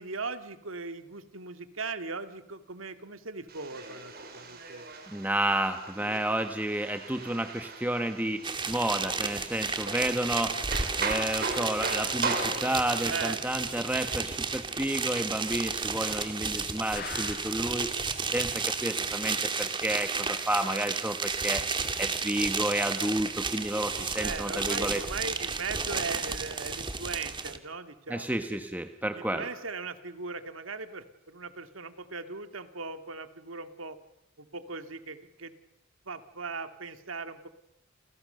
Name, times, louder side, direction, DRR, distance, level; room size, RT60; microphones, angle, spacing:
voice 1, 0.0-4.9 13.1-13.4 24.0-28.4 29.1-34.0 34.4-35.6 36.1-37.5, right 4 dB, 90° right, 9 dB, 2.1 m, -38 dB
sound 1, 3.5-13.0, right 3 dB, 50° right, 5.6 m, -38 dB
voice 2, 5.1-10.6 11.0-17.9 18.2-21.6 22.0-25.0 28.1-29.4, right 1 dB, 10° right, 7 dB, 1.3 m, -31 dB
sound 2, 8.4-27.6, right 4 dB, 25° right, 2.4 m, -32 dB
sound 3, 17.0-17.8 18.2-18.3 18.5-18.6 19.1-19.2, left 7 dB, 50° left, 1.3 m, -41 dB
29.5 x 29.5 x 6.8 m, 0.84 s
head